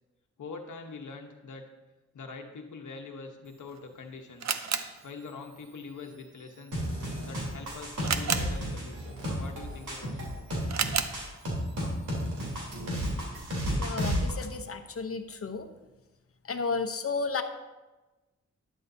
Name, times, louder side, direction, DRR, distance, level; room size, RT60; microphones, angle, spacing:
voice 1, 0.4-1.7 2.1-4.6 5.0-6.8 7.2-10.3, left 4 dB, 85° left, 3 dB, 1.1 m, -44 dB
Camera, 3.5-13.3, right 7 dB, 65° right, 0.7 m, -37 dB
sound 1, 6.7-14.3, equal, 85° right, 3.7 m, -32 dB
voice 2, 13.8-15.7 16.5-17.4, left 4 dB, 50° left, 6 dB, 0.9 m, -33 dB
12.0 x 11.0 x 2.8 m, 1.1 s
wide cardioid pair, 125°, 30 cm